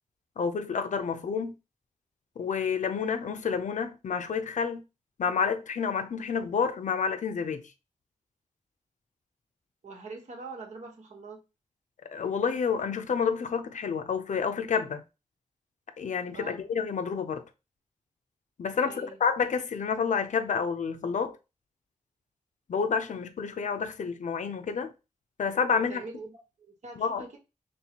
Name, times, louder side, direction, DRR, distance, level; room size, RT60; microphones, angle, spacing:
voice 1, 0.4-1.5 2.4-4.8 5.2-7.6 12.0-15.0 16.0-17.4 18.6-21.4 22.7-24.9 25.4-26.0 27.0-27.3, left 6 dB, 70° left, 0.5 m, -29 dB
voice 2, 9.8-11.4 16.3-16.6 18.8-19.2 25.7-27.4, right 3 dB, 65° right, 1.2 m, -43 dB
4.4 x 3.1 x 2.9 m
wide cardioid pair, 120°, 13 cm